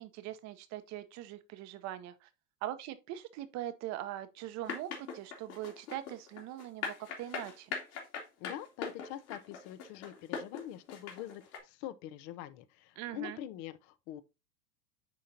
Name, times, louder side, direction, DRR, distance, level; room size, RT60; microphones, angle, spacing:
voice 1, 0.0-2.3 2.6-7.7 13.0-13.4, right 13 dB, 35° right, 0.8 m, -42 dB
sound 1, 4.6-11.6, left 6 dB, 60° left, 2.7 m, -40 dB
voice 2, 8.4-14.2, left 12 dB, 45° left, 0.7 m, -44 dB
10.0 x 3.7 x 2.7 m
hypercardioid pair, 110°, 48 cm